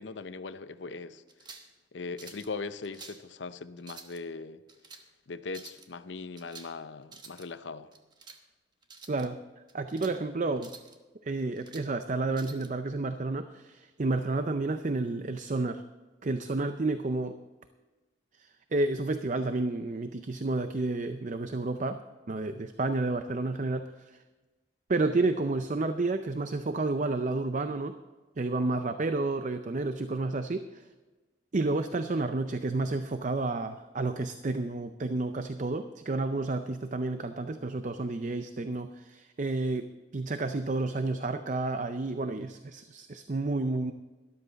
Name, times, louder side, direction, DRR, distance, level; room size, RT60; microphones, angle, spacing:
voice 1, 0.0-1.5 1.9-4.6 5.3-7.9, left 4 dB, 80° left, 0.7 m, -40 dB
sound 1, 1.3-1.7 2.2-2.5 2.8-3.2 3.8-4.2 4.7-5.0 5.5-5.9 6.4-6.8 7.0-7.5 7.9-8.4 8.8-9.3 9.7-10.2 10.6-11.0 11.4-11.9 12.3-12.7, right 4 dB, 25° right, 1.1 m, -49 dB
voice 2, 9.1-9.4 9.7-10.7 11.2-15.8 16.2-17.4 18.4-22.0 22.3-24.2 24.9-28.0 28.4-30.8 31.5-43.9, right 2 dB, 45° right, 0.5 m, -30 dB
13.0 x 12.5 x 4.0 m
head